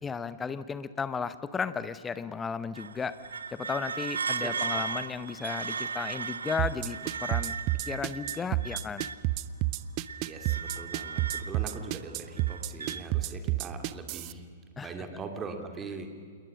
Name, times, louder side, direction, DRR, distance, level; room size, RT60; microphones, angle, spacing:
voice 1, 0.0-3.1 3.5-7.5 7.8-9.1 14.8-15.0, left 5 dB, 15° left, 14 dB, 1.0 m, -34 dB
sound 1, 2.7-9.4 9.8-13.1, right 5 dB, 70° right, 0.8 m, -36 dB
voice 2, 4.4-4.8 10.2-14.4 14.8-16.1, right 4 dB, 20° right, 5 dB, 3.1 m, -41 dB
sound 2, 6.6-14.3, right 17 dB, 40° right, 0.6 m, -29 dB
27.5 x 21.0 x 6.4 m, 2.1 s
figure-of-eight pair, 105°, 0 cm